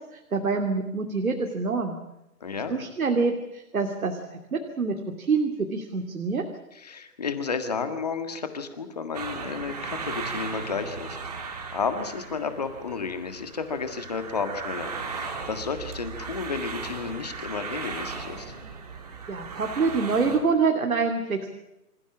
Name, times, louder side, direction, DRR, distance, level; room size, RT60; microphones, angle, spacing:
voice 1, 0.3-2.0 2.7-4.2 4.5-6.4 19.3-21.5, right 4 dB, 60° right, 3 dB, 2.9 m, -26 dB
voice 2, 2.4-2.8 6.7-18.5, left 5 dB, 25° left, 8 dB, 1.7 m, -32 dB
sound 1, 9.1-20.4, right 5 dB, 25° right, 2.4 m, -37 dB
27.0 x 15.5 x 8.6 m, 0.89 s
hypercardioid pair, 175°, 47 cm